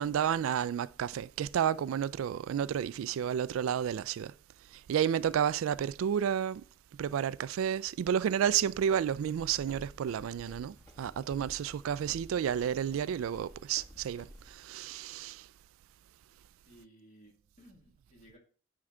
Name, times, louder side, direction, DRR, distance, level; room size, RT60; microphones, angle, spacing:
voice 1, 0.0-4.3 4.9-6.6 7.0-15.5, right 9 dB, 85° right, 0.3 m, -31 dB
Run, 8.5-14.5, equal, 15° left, 1.4 m, -53 dB
voice 2, 16.6-18.4, right 1 dB, 35° left, 2.0 m, -58 dB
9.7 x 4.5 x 3.7 m
head